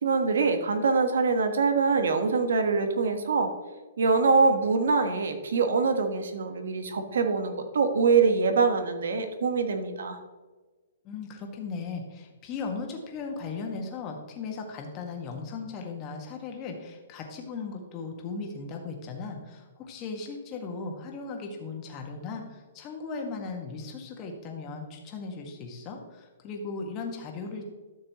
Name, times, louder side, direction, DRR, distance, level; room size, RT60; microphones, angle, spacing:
voice 1, 0.0-3.5 4.0-10.2, right 4 dB, 80° right, 7 dB, 1.3 m, -24 dB
voice 2, 11.0-27.6, left 4 dB, 25° left, 2 dB, 1.6 m, -37 dB
12.5 x 6.6 x 3.0 m, 1.3 s
hypercardioid pair, 155°, 0 cm